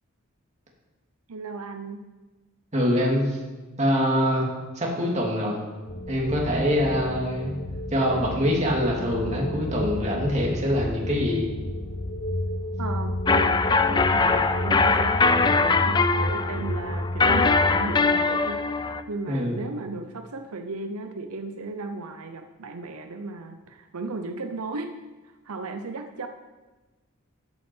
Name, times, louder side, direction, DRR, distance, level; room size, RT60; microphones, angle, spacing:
voice 1, 1.3-2.0 12.8-18.8 19.1-25.0 25.4-26.3, right 3 dB, 85° right, 6 dB, 0.7 m, -35 dB
voice 2, 2.7-3.4 3.8-4.5 4.7-5.6 6.1-7.6 7.9-11.5 19.3-19.6, equal, 30° right, -2 dB, 2.5 m, -24 dB
sound 1, 5.9-18.0, left 1 dB, 60° left, 1.2 m, -32 dB
sound 2, 13.3-19.0, left 4 dB, 20° left, 0.3 m, -22 dB
13.0 x 8.7 x 4.5 m, 1.2 s
head